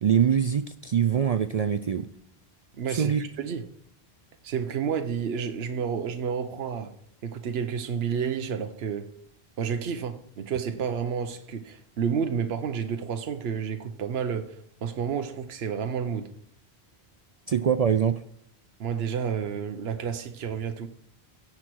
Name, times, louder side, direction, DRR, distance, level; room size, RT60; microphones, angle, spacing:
voice 1, 0.0-2.1 2.9-3.2 17.5-18.2, right 8 dB, 55° right, 0.4 m, -23 dB
voice 2, 2.8-3.7 4.4-6.9 7.2-9.1 9.6-16.3 18.8-20.9, right 7 dB, 75° right, 1.0 m, -30 dB
16.5 x 6.0 x 4.6 m
omnidirectional pair, 1.1 m